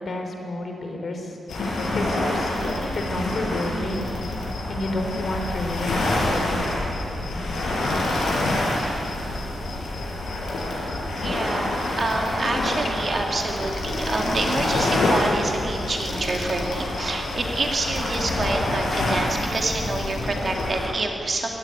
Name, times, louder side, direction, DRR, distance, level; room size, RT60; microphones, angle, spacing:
voice 1, 0.0-4.1 4.7-6.6, left 1 dB, 45° left, 3 dB, 3.4 m, -30 dB
sound 1, 1.5-20.9, left 1 dB, 85° left, 6.3 m, -26 dB
voice 2, 11.2-21.5, right 2 dB, 30° right, 1 dB, 2.3 m, -27 dB
23.0 x 17.5 x 9.4 m, 2.8 s
wide cardioid pair, 180°, 0 cm